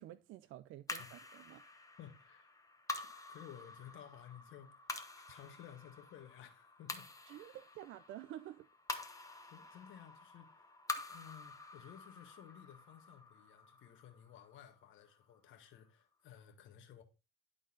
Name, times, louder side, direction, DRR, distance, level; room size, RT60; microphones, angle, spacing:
voice 1, 0.0-1.6 7.3-8.7, right 13 dB, 85° right, 0.4 m, -50 dB
sound 1, 0.9-15.4, left 3 dB, 15° left, 1.0 m, -48 dB
voice 2, 2.0-2.5 3.3-7.1 7.4-7.6 9.2-10.8 11.1-17.0, left 10 dB, 85° left, 1.4 m, -56 dB
11.0 x 4.0 x 3.7 m
cardioid pair, 90°, 20 cm